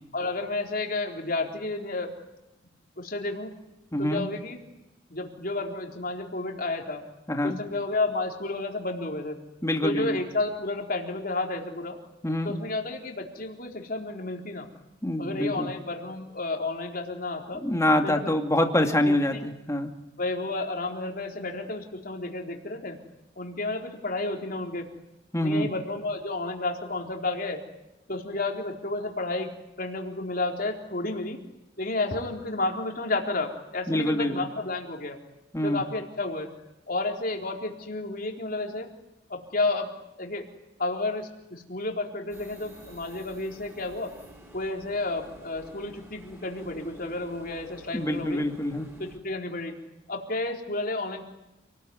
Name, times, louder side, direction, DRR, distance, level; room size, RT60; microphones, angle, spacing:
voice 1, 0.1-2.2 3.0-3.5 4.0-4.6 5.1-7.0 7.4-9.4 9.8-12.0 12.4-14.7 15.2-17.6 18.0-18.3 18.8-19.1 20.2-23.0 23.4-24.9 25.4-27.6 28.1-31.4 31.8-35.2 35.6-36.5 36.9-38.9 39.3-40.5 40.8-44.2 44.5-48.4 49.0-49.8 50.1-51.2, left 2 dB, 45° left, 2 dB, 4.1 m, -31 dB
voice 2, 3.9-4.3 7.3-7.6 9.6-10.2 12.2-12.6 15.0-15.7 17.5-19.9 25.3-25.7 33.9-34.5 35.5-35.8 47.9-48.9, left 1 dB, 15° left, 4 dB, 2.5 m, -25 dB
sound 1, 42.3-49.2, equal, 15° right, 5.4 m, -50 dB
28.5 x 20.0 x 9.7 m, 0.93 s
head